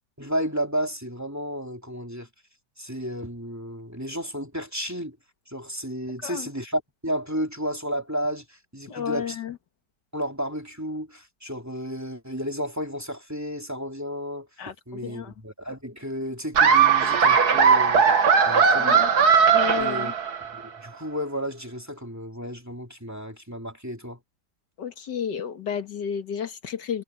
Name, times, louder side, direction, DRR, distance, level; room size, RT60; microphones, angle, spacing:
voice 1, 0.2-2.3 2.8-5.2 5.5-9.4 10.1-14.5 14.9-18.0 18.5-19.4 19.7-20.1 20.5-24.2, equal, 10° right, 2.9 m, -32 dB
voice 2, 8.9-9.6 14.6-15.3 18.8-19.1 19.5-20.1 24.8-27.0, left 8 dB, 80° left, 2.2 m, -32 dB
Laughter, 16.5-20.6, right 6 dB, 65° right, 2.1 m, -18 dB
omnidirectional pair, 1.8 m